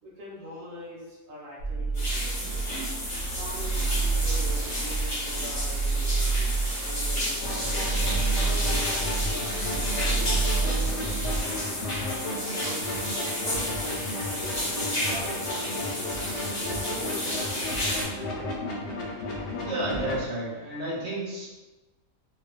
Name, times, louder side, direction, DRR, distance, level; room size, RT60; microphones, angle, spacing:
voice 1, 0.0-2.3 3.4-6.6 6.8-7.8 8.4-11.8 12.2-16.1 16.6-17.7 18.1-18.6, equal, 45° right, -7 dB, 0.7 m, -42 dB
sound 1, 1.6-11.4, right 4 dB, 85° right, 1.1 m, -29 dB
sound 2, 1.9-18.0, left 1 dB, 30° left, 0.7 m, -32 dB
sound 3, 7.4-20.2, left 2 dB, 65° left, 0.8 m, -34 dB
voice 2, 19.6-21.5, right 1 dB, 65° right, -7 dB, 1.0 m, -32 dB
2.4 x 2.2 x 2.3 m, 1.1 s
omnidirectional pair, 1.5 m